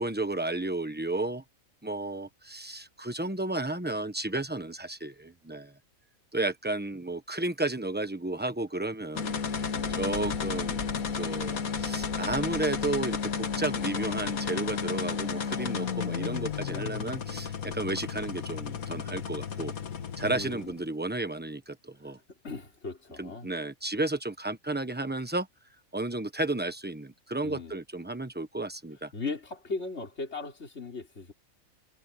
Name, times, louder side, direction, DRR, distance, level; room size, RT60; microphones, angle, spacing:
voice 1, 0.0-1.4 1.8-5.7 6.3-10.8 11.1-19.7 20.2-22.2 23.2-25.5 25.9-29.1, right 2 dB, 10° right, 1.1 m, -33 dB
sound 1, 9.1-20.8, left 6 dB, 90° left, 1.9 m, -33 dB
voice 2, 9.7-10.2 16.7-17.1 20.2-20.8 22.0-22.1 22.4-23.5 27.4-27.7 29.1-31.3, left 3 dB, 50° left, 4.5 m, -38 dB
omnidirectional pair, 1.5 m